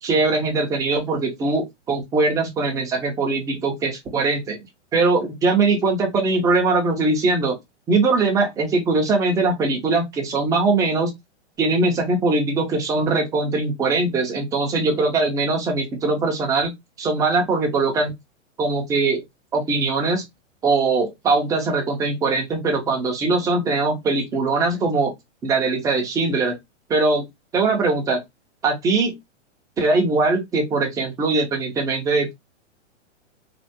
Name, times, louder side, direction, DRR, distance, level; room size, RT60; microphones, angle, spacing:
voice 1, 0.0-4.6 4.9-7.6 7.9-11.1 11.6-16.7 17.0-18.1 18.6-19.2 19.5-20.2 20.6-25.1 25.4-26.5 26.9-27.3 27.5-28.2 28.6-29.1 29.8-32.3, right 3 dB, 10° right, 0.5 m, -21 dB
3.4 x 2.3 x 2.6 m
hypercardioid pair, 150°, 36 cm